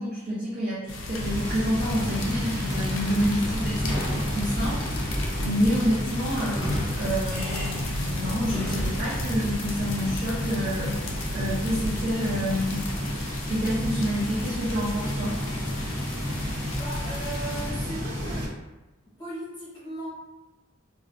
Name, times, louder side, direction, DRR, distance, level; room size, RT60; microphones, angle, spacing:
voice 1, 0.0-6.6 7.0-12.9 13.5-15.4, equal, 40° right, -10 dB, 0.6 m, -28 dB
sound 1, 0.9-17.7, left 2 dB, 65° left, 0.4 m, -37 dB
sound 2, 1.2-18.5, equal, 85° right, 0.9 m, -31 dB
Sliding door / Squeak, 3.0-9.1, equal, 5° right, 0.8 m, -34 dB
voice 2, 16.7-18.5 19.1-20.1, right 1 dB, 20° left, -9 dB, 1.0 m, -37 dB
2.5 x 2.1 x 2.5 m, 1.1 s
head